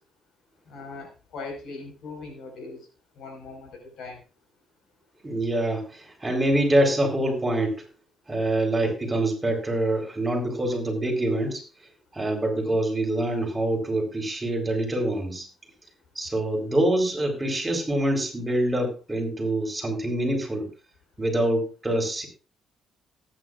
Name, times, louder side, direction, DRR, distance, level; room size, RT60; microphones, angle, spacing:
voice 1, 0.7-2.8 3.2-4.2, left 3 dB, 75° left, 3 dB, 4.9 m, -40 dB
voice 2, 5.2-7.8 8.3-11.6 12.1-15.5 16.2-20.7 21.2-22.3, right 1 dB, 15° right, 2 dB, 4.1 m, -25 dB
18.5 x 9.5 x 2.5 m, 0.34 s
cardioid pair, 90°, 0 cm